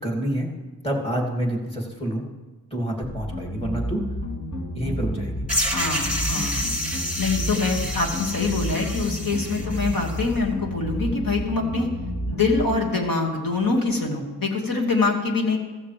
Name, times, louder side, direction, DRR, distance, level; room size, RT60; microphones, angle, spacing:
voice 1, 0.0-0.5 0.8-2.2 2.7-4.0 4.7-5.4, right 1 dB, 15° left, -1 dB, 2.8 m, -27 dB
sound 1, 3.0-12.6, equal, 50° left, 2.9 m, -31 dB
sound 2, 5.5-10.2, equal, 5° right, 2.6 m, -29 dB
voice 2, 5.6-6.6 7.2-11.9 12.3-15.6, left 3 dB, 65° left, 1 dB, 2.3 m, -24 dB
15.0 x 14.5 x 3.5 m, 1.3 s
wide cardioid pair, 95°, 37 cm